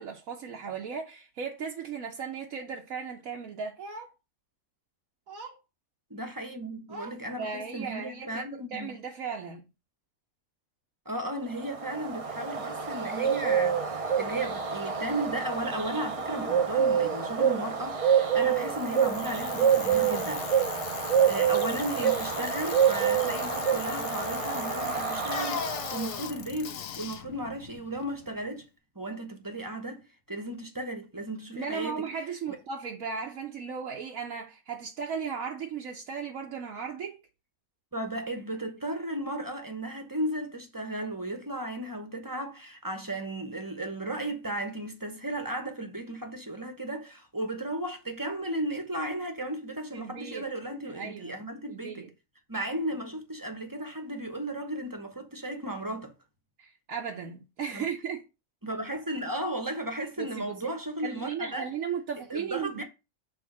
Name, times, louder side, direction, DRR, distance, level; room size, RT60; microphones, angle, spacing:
voice 1, 0.0-4.1 5.3-5.6 6.9-9.7 31.5-37.2 49.9-50.4 50.8-51.4 51.7-52.1 56.6-58.2 60.2-60.7 61.0-62.8, right 6 dB, 75° right, 1.3 m, -36 dB
voice 2, 6.1-9.0 11.0-20.5 21.0-28.7 28.9-32.1 32.5-32.6 37.9-52.1 52.5-56.1 57.7-57.9 58.6-61.6 62.3-62.8, right 1 dB, 15° right, 1.0 m, -35 dB
Bird, 11.6-26.3, right 7 dB, 40° right, 0.5 m, -27 dB
Bicycle, 18.4-28.5, left 9 dB, 75° left, 1.1 m, -39 dB
6.3 x 3.5 x 6.0 m
omnidirectional pair, 1.4 m